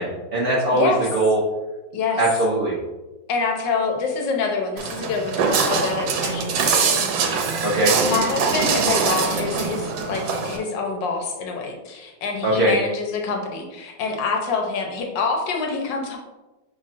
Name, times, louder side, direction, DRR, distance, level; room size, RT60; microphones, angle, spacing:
voice 1, 0.0-1.4 2.2-2.8 7.6-8.0 12.4-12.8, right 1 dB, 65° right, -7 dB, 0.5 m, -20 dB
voice 2, 3.3-7.5 8.0-16.2, left 4 dB, 75° left, 2 dB, 1.4 m, -26 dB
Walk footsteps, 4.8-10.6, right 5 dB, 85° right, 1.4 m, -23 dB
5.3 x 3.4 x 2.5 m, 1.1 s
omnidirectional pair, 2.1 m